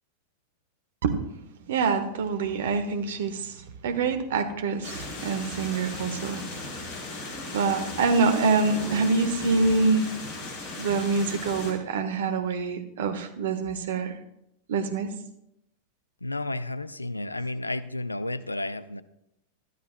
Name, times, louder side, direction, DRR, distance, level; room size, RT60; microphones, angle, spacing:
voice 1, 1.7-6.6 7.5-10.1 10.8-14.2 14.7-15.1, right 4 dB, 60° right, 9 dB, 1.2 m, -26 dB
sound 1, 4.8-11.7, left 2 dB, 45° left, 3.4 m, -37 dB
sound 2, 6.3-8.1 8.6-10.9, right 1 dB, 30° right, 4.7 m, -46 dB
voice 2, 16.2-19.0, left 2 dB, 85° left, 16 dB, 0.5 m, -32 dB
20.0 x 13.0 x 2.2 m, 0.82 s
figure-of-eight pair, 90°, 0 cm